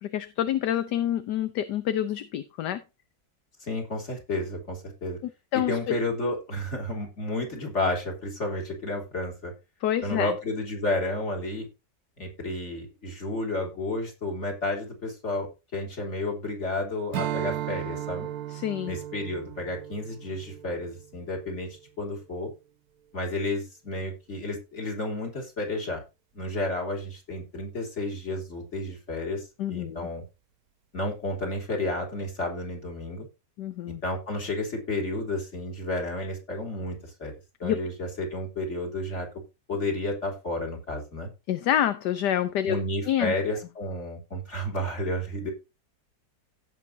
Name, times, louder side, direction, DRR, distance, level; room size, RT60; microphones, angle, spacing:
voice 1, 0.0-2.8 5.5-5.8 9.8-10.3 18.5-19.0 29.6-30.1 33.6-34.0 37.6-37.8 41.5-42.8 43.1-43.3, left 11 dB, 70° left, 1.3 m, -27 dB
voice 2, 3.6-5.2 5.5-9.5 10.0-11.7 12.2-18.3 18.9-22.5 23.1-26.0 26.3-30.2 30.9-33.3 34.0-37.3 37.6-39.3 39.7-41.3 42.7-45.5, left 2 dB, 40° left, 3.6 m, -31 dB
Strum, 17.1-21.8, right 12 dB, 65° right, 1.1 m, -36 dB
17.0 x 6.1 x 2.7 m
omnidirectional pair, 1.9 m